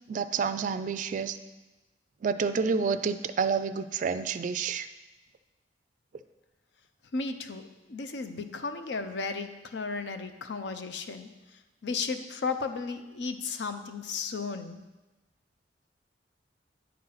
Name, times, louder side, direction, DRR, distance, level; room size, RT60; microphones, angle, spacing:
voice 1, 0.1-1.4 2.2-4.9, right 5 dB, 45° right, 12 dB, 0.3 m, -29 dB
voice 2, 7.1-11.3 11.8-14.8, left 4 dB, 70° left, 9 dB, 0.6 m, -34 dB
9.5 x 3.9 x 5.7 m, 1.1 s
head